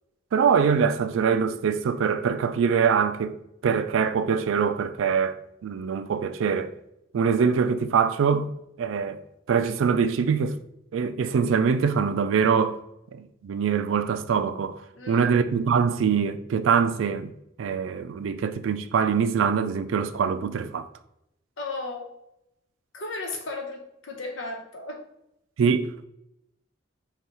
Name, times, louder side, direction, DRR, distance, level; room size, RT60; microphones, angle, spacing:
voice 1, 0.3-3.4 3.6-6.7 7.1-8.5 8.8-9.2 9.5-10.6 10.9-12.8 13.1-14.8 15.1-17.3 17.6-20.9 25.6-26.0, right 6 dB, 80° right, 0.3 m, -23 dB
voice 2, 14.9-15.3 21.6-22.1 22.9-25.0, left 3 dB, 80° left, 0.9 m, -35 dB
5.3 x 2.3 x 3.0 m
head